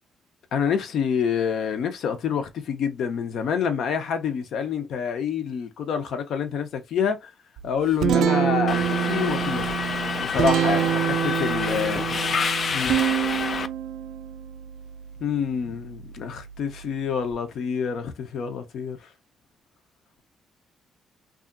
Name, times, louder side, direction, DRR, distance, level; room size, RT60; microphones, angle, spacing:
voice 1, 0.5-7.3 7.6-9.7 10.2-12.0 12.7-12.9 15.2-19.1, left 7 dB, 70° left, 0.7 m, -27 dB
Guitar, 7.6-17.3, right 10 dB, 75° right, 0.3 m, -27 dB
Subway metro underground, 8.7-13.7, left 5 dB, 45° left, 0.4 m, -28 dB
2.7 x 2.4 x 2.5 m
cardioid pair, 90°, 0 cm